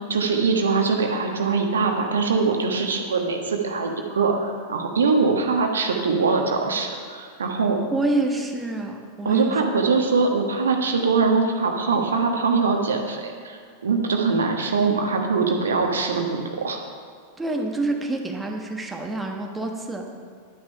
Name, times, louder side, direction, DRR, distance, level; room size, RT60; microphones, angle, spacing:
voice 1, 0.1-7.8 9.2-16.8, right 4 dB, 70° right, 3 dB, 1.3 m, -22 dB
voice 2, 7.9-9.6 17.4-20.1, right 2 dB, 10° right, 2 dB, 1.2 m, -27 dB
10.5 x 9.4 x 5.5 m, 2.1 s
figure-of-eight pair, 90°, 0 cm